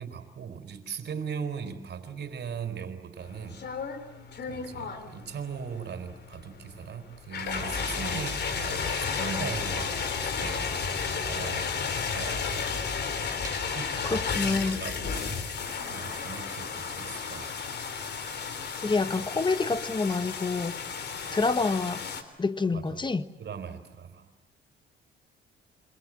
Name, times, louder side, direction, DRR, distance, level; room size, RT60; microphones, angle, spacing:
voice 1, 0.0-3.7 4.5-12.7 13.7-15.4 15.9-17.6 21.1-21.2 22.7-23.0 23.4-24.3, right 6 dB, 60° right, 4.3 m, -39 dB
sound 1, 3.2-22.2, left 6 dB, 60° left, 3.6 m, -33 dB
sound 2, 8.6-17.5, right 3 dB, 15° right, 3.1 m, -49 dB
voice 2, 14.0-14.8 18.8-22.0 22.4-23.3, left 3 dB, 25° left, 1.4 m, -28 dB
27.5 x 26.0 x 7.6 m
cardioid pair, 90°, 20 cm